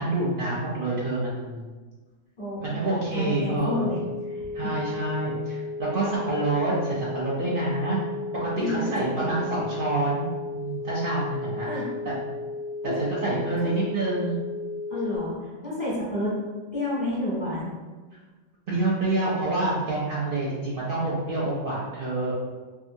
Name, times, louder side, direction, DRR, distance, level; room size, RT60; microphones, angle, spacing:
voice 1, 0.0-1.7 2.6-3.9 4.5-8.0 8.4-10.3 10.5-11.7 12.0-12.2 12.8-14.4 18.7-22.3, right 2 dB, 60° right, -6 dB, 0.6 m, -27 dB
voice 2, 2.4-4.0 4.3-4.7 8.6-8.9 9.2-9.6 11.7-11.8 12.8-12.9 13.6-13.7 14.9-16.3 16.7-17.7, left 1 dB, 40° left, -8 dB, 1.0 m, -30 dB
sound 1, 3.6-15.2, left 3 dB, 70° left, 0.9 m, -34 dB
2.7 x 2.4 x 2.6 m, 1.3 s
omnidirectional pair, 1.3 m